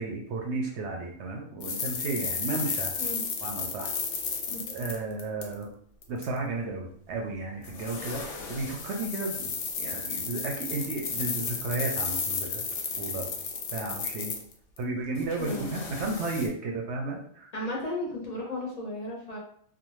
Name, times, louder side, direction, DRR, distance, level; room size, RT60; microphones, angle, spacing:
voice 1, 0.0-2.9 3.4-3.9 4.7-5.7 6.1-9.5 9.8-12.6 13.0-13.3 13.7-14.3 14.8-17.5, right 3 dB, 70° right, 1 dB, 0.8 m, -33 dB
sound 1, 1.6-5.6 6.0-6.2 7.6-14.8 15.2-16.5, left 5 dB, 70° left, 0.8 m, -33 dB
voice 2, 15.4-15.7 17.5-19.4, left 1 dB, 45° left, -2 dB, 0.6 m, -34 dB
2.5 x 2.3 x 3.0 m, 0.62 s
omnidirectional pair, 1.3 m